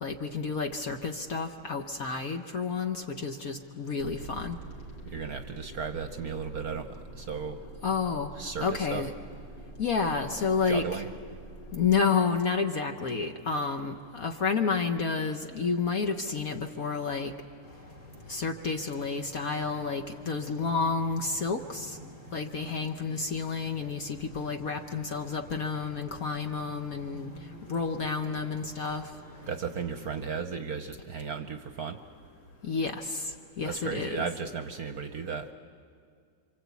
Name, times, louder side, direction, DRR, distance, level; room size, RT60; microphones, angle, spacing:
voice 1, 0.0-4.6 7.8-8.3 8.6-9.1 9.8-11.0 11.7-17.3 18.3-22.0 22.3-27.3 27.7-29.1 32.6-34.3, left 5 dB, 50° left, 5 dB, 1.2 m, -30 dB
sound 1, 4.0-12.0, right 2 dB, 65° left, 3.8 m, -46 dB
voice 2, 5.0-7.7 8.4-9.0 10.7-11.1 29.5-32.0 33.6-35.5, right 6 dB, 55° right, 7 dB, 1.2 m, -35 dB
sound 2, 17.6-30.3, equal, 80° left, 4.9 m, -49 dB
28.0 x 25.5 x 8.3 m, 2.2 s
omnidirectional pair, 2.3 m